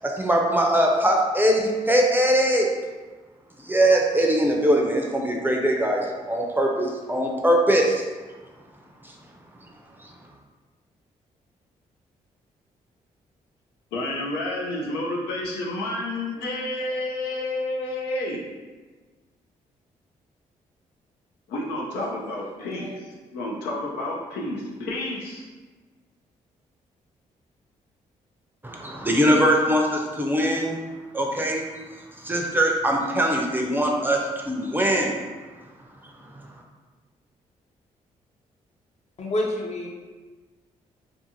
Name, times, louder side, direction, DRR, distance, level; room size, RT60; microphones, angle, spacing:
voice 1, 0.0-2.7 3.6-8.0 10.0-10.1 28.6-30.8 31.1-31.6 32.2-35.2 36.0-36.4, right 1 dB, 10° right, 0 dB, 0.5 m, -22 dB
voice 2, 13.9-18.4 21.5-25.5, left 1 dB, 85° left, -2 dB, 0.5 m, -30 dB
voice 3, 39.2-39.9, left 1 dB, 45° left, -1 dB, 0.7 m, -28 dB
2.5 x 2.4 x 2.7 m, 1.3 s
hypercardioid pair, 50°, 16 cm